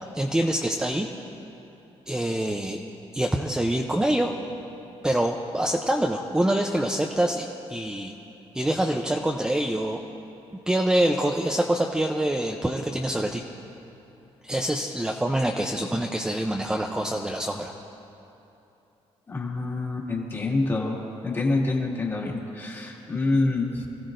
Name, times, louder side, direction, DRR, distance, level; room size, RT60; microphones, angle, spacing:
voice 1, 0.1-1.1 2.1-2.8 3.1-4.3 5.0-8.1 8.5-10.0 10.5-13.4 14.4-17.7, right 1 dB, 5° right, 1 dB, 0.6 m, -25 dB
voice 2, 19.3-21.0 21.2-23.9, left 2 dB, 20° left, -2 dB, 2.0 m, -26 dB
27.0 x 15.5 x 2.6 m, 2.9 s
cardioid pair, 160°, 11 cm